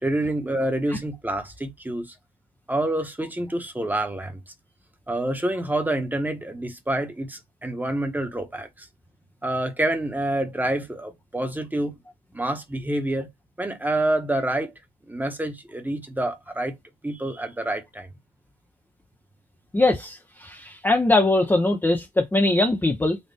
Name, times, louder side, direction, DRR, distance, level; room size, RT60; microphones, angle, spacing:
voice 1, 0.0-2.1 2.7-4.4 5.1-8.9 9.4-12.0 12.3-13.3 13.6-14.7 15.1-16.8 17.0-18.1, right 1 dB, 10° right, 1.1 m, -27 dB
voice 2, 19.7-23.2, left 2 dB, 10° left, 0.7 m, -21 dB
4.2 x 2.5 x 3.4 m
cardioid pair, 90°, 20 cm